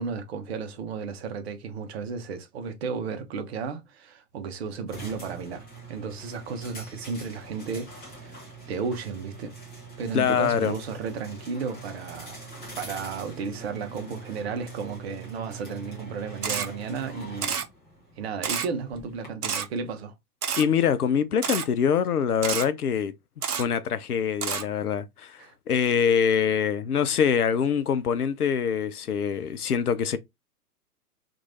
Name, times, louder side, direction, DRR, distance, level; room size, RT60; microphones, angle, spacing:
voice 1, 0.0-5.6 5.9-9.5 10.0-12.4 12.8-17.6 18.2-20.1 25.4-25.5, right 5 dB, 40° right, 1.0 m, -34 dB
sound 1, 4.9-19.3, right 3 dB, 5° left, 0.4 m, -43 dB
voice 2, 10.1-10.7 20.6-23.1 23.5-30.2, left 7 dB, 70° left, 0.7 m, -24 dB
Camera, 16.4-16.7 17.4-17.7 18.4-18.7 19.4-19.7 20.4-20.6 21.4-21.7 22.4-22.7 23.4-23.6 24.4-24.6, right 7 dB, 70° right, 0.9 m, -28 dB
3.1 x 2.6 x 4.0 m
figure-of-eight pair, 115°, 46 cm